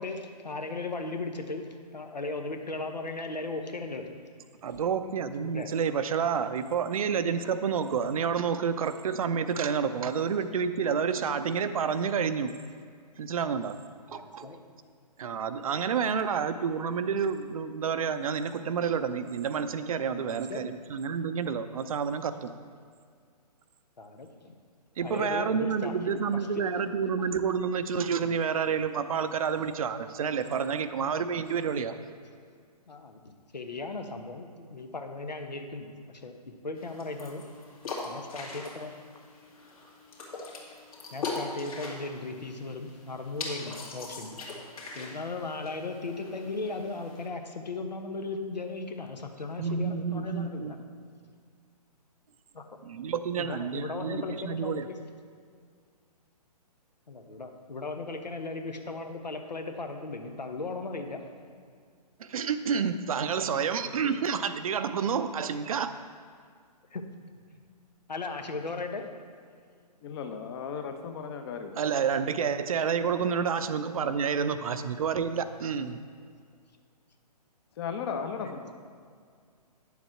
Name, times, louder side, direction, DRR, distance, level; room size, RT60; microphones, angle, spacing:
voice 1, 0.0-4.1 5.4-5.7 14.1-14.6 20.2-20.6 24.0-24.6 25.0-26.2 32.9-36.4 36.6-37.4 38.0-38.9 41.1-44.3 44.9-50.8 52.5-52.6 53.4-55.0 57.1-61.2 66.9-67.0 68.1-69.1 78.1-78.6, left 3 dB, 90° left, 5 dB, 1.1 m, -37 dB
voice 2, 4.6-12.5 13.2-13.8 14.1-14.5 15.2-22.5 25.0-32.0 49.6-50.7 52.8-54.9 62.2-66.0 71.8-76.0, right 6 dB, 55° right, 10 dB, 0.6 m, -29 dB
sound 1, 36.8-47.3, left 3 dB, 60° left, 2.2 m, -41 dB
voice 3, 70.0-71.8 74.1-74.2 77.8-78.7, left 6 dB, 35° left, 6 dB, 0.8 m, -36 dB
9.5 x 7.2 x 4.4 m, 2.1 s
figure-of-eight pair, 135°, 21 cm